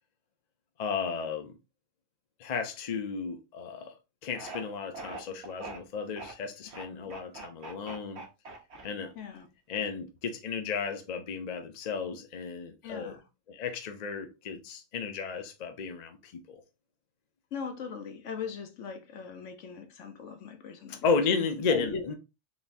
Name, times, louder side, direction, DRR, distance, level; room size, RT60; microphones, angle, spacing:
voice 1, 0.8-1.5 2.4-3.9 4.2-8.2 8.8-9.1 9.7-13.1 13.5-16.6 20.9-22.1, left 5 dB, 45° left, 0.6 m, -33 dB
sound 1, 4.3-4.6 4.9-5.8 6.2-6.3 6.7-9.2, right 2 dB, 60° right, 1.1 m, -42 dB
voice 2, 9.2-9.5 12.8-13.2 17.5-21.1 21.7-22.1, left 5 dB, 70° left, 1.1 m, -39 dB
4.0 x 3.5 x 2.5 m
omnidirectional pair, 1.3 m